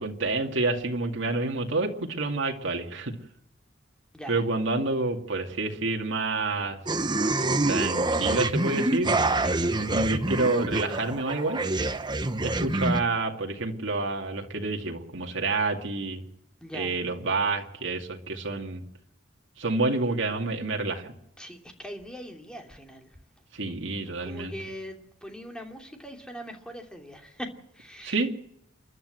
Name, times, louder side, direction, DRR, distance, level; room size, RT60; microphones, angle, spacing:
voice 1, 0.0-3.2 4.3-6.8 7.7-9.2 9.8-11.6 12.4-16.2 16.7-18.8 19.6-21.1 23.5-24.5 28.0-28.3, right 3 dB, 65° right, 2 dB, 2.4 m, -28 dB
sound 1, 6.9-13.0, right 2 dB, 25° right, 1.0 m, -26 dB
voice 2, 9.4-9.7 16.6-17.0 21.4-23.1 24.1-28.2, equal, 5° left, 3 dB, 2.9 m, -41 dB
29.5 x 11.5 x 7.9 m, 0.79 s
head